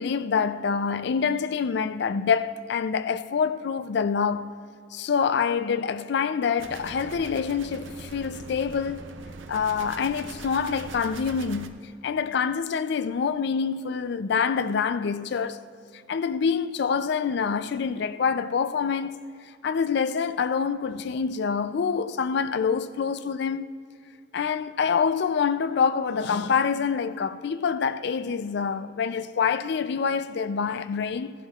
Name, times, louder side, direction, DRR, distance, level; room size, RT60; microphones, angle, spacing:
voice 1, 0.0-4.5 4.9-9.1 9.5-15.6 16.1-19.2 19.6-23.6 24.3-31.3, left 6 dB, 60° left, 0.4 m, -26 dB
sound 1, 6.6-11.7, right 3 dB, 80° right, 0.6 m, -41 dB
17.0 x 11.5 x 2.4 m
head